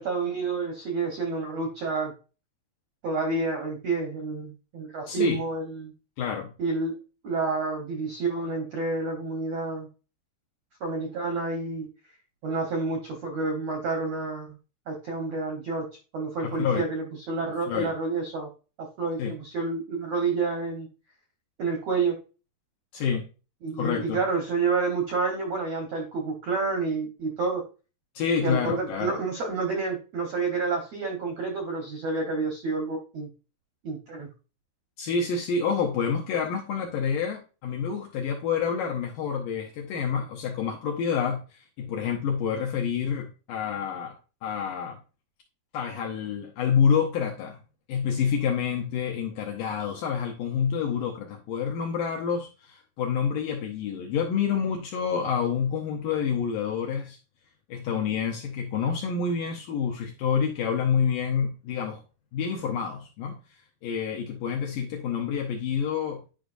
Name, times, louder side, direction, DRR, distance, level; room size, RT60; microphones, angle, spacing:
voice 1, 0.0-2.1 3.0-5.9 6.6-7.0 7.2-9.9 10.8-11.9 12.4-14.6 14.9-15.9 16.1-18.5 18.8-20.9 21.6-22.2 23.6-27.6 28.4-33.3 33.8-34.3, right 4 dB, 75° right, 1.5 m, -29 dB
voice 2, 5.1-5.4 6.2-6.5 16.4-16.8 17.7-17.9 19.2-19.3 22.9-23.3 23.7-24.2 28.2-29.2 35.0-44.2 44.4-45.0 45.7-47.6 47.9-57.2 57.7-62.0 62.3-63.4 63.8-66.2, left 6 dB, 80° left, 2.0 m, -28 dB
10.5 x 5.0 x 2.5 m
omnidirectional pair, 4.8 m